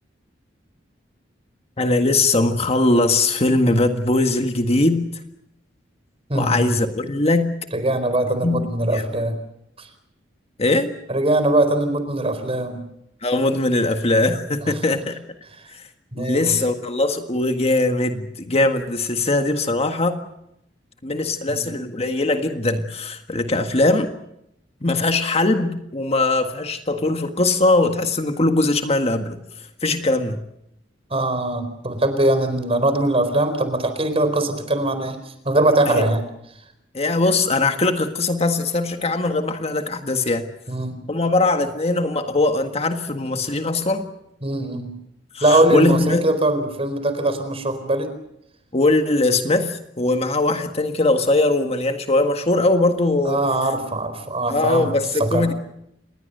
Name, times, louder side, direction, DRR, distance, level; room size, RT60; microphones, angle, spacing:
voice 1, 1.8-5.2 6.3-7.6 8.4-9.0 10.6-10.9 13.2-15.2 15.7-15.9 16.1-20.2 21.0-24.1 24.8-29.4 29.8-30.4 35.8-36.1 36.9-40.5 41.1-44.1 45.3-46.3 48.7-53.4 54.5-55.5, left 2 dB, 35° left, 1.7 m, -20 dB
voice 2, 6.3-6.7 7.7-9.4 9.8-9.9 11.1-12.8 16.1-16.5 21.5-21.7 31.1-35.2 35.4-36.2 40.7-41.0 44.4-44.9 45.4-48.1 53.2-54.9 55.2-55.4, right 1 dB, 35° right, 4.3 m, -21 dB
28.0 x 21.0 x 6.8 m
head